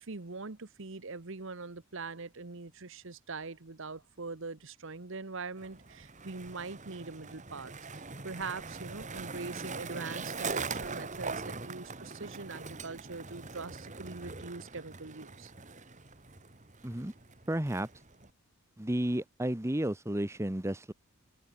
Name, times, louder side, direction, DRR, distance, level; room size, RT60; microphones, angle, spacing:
voice 1, 0.0-15.5, right 4 dB, 60° right, 1.1 m, -42 dB
Skateboard, 5.6-18.3, right 4 dB, 35° right, 2.3 m, -42 dB
voice 2, 17.5-17.9 18.8-20.9, right 1 dB, 10° right, 0.9 m, -32 dB
head